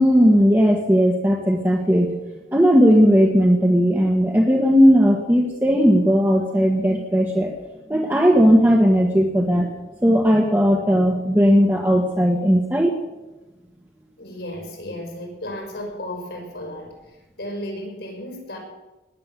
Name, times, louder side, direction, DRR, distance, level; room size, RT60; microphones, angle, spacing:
voice 1, 0.0-2.1 2.5-7.5 7.9-9.7 10.0-12.9, equal, 10° right, -1 dB, 1.5 m, -17 dB
voice 2, 14.2-18.6, left 1 dB, 75° left, 1 dB, 6.1 m, -34 dB
20.0 x 8.8 x 7.6 m, 1.1 s
head